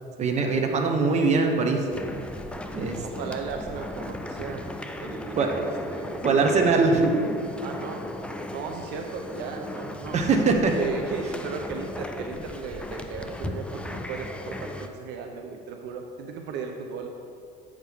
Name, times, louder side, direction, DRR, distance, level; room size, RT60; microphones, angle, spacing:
voice 1, 0.2-1.8 2.7-3.0 5.4-5.5 6.2-7.1 10.1-10.8, right 4 dB, 40° right, 3 dB, 0.9 m, -22 dB
sound 1, 1.9-14.9, left 1 dB, 5° left, 0.4 m, -36 dB
voice 2, 3.0-4.6 5.0-6.3 7.6-8.1 8.5-10.2 10.8-17.1, right 5 dB, 70° right, 3 dB, 0.6 m, -36 dB
8.7 x 6.5 x 3.5 m, 2.5 s
cardioid pair, 125°, 18 cm